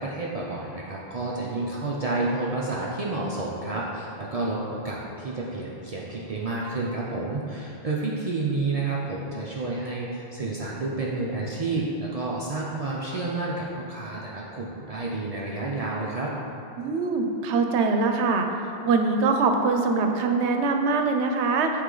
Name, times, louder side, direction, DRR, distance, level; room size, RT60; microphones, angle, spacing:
voice 1, 0.0-16.3, right 2 dB, 50° right, -4 dB, 0.5 m, -30 dB
voice 2, 16.8-18.5 18.8-21.7, right 4 dB, 85° right, 4 dB, 0.9 m, -23 dB
8.0 x 3.2 x 3.8 m, 2.9 s
omnidirectional pair, 1.1 m